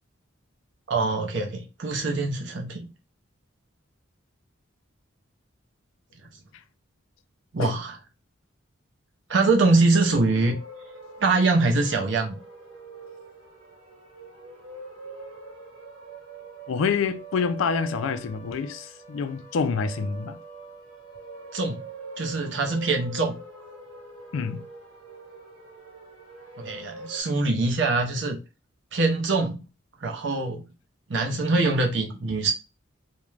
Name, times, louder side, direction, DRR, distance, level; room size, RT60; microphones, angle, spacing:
voice 1, 0.9-2.9 7.5-8.0 9.3-10.6 11.2-12.4 21.5-21.8 22.2-23.3 26.6-28.4 28.9-29.6 30.0-30.7 31.1-32.5, right 3 dB, 60° right, 0.6 m, -23 dB
sound 1, 9.9-27.2, right 3 dB, 85° right, 1.3 m, -44 dB
voice 2, 16.7-20.4 24.3-24.6, left 5 dB, 80° left, 0.4 m, -27 dB
2.4 x 2.1 x 3.1 m
head